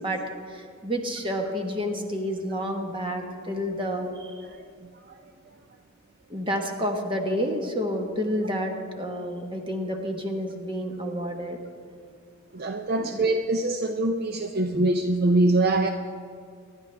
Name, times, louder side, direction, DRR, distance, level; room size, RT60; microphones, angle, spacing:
voice 1, 0.0-4.4 6.3-11.6 13.0-13.2, equal, 25° right, 3 dB, 1.3 m, -30 dB
voice 2, 12.5-15.9, right 2 dB, 50° right, 6 dB, 0.5 m, -23 dB
24.5 x 11.0 x 3.4 m, 2.3 s
head